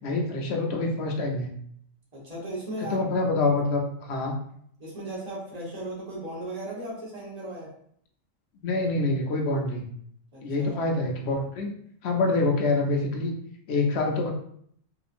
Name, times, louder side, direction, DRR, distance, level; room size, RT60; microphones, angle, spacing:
voice 1, 0.0-1.5 2.8-4.3 8.6-9.8 10.4-11.7 12.0-13.3 13.7-14.3, left 2 dB, 65° left, 1 dB, 0.8 m, -26 dB
voice 2, 2.1-3.0 4.8-7.7 10.3-10.9, right 1 dB, 35° right, -6 dB, 1.0 m, -36 dB
2.8 x 2.4 x 2.4 m, 0.65 s
omnidirectional pair, 1.3 m